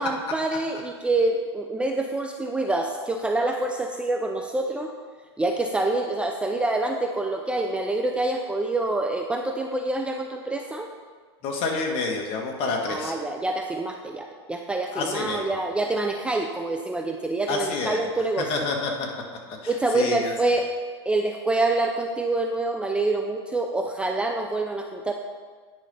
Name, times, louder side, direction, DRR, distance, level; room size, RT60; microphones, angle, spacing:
voice 1, 0.0-4.9 5.4-10.9 12.9-18.6 19.7-20.7 21.1-25.1, right 2 dB, 5° right, 3 dB, 0.5 m, -26 dB
voice 2, 11.4-13.1 14.9-15.5 17.5-18.0 18.4-19.1 19.6-20.3, left 3 dB, 40° left, 2 dB, 1.6 m, -28 dB
10.0 x 5.0 x 5.4 m, 1.5 s
hypercardioid pair, 120°, 14 cm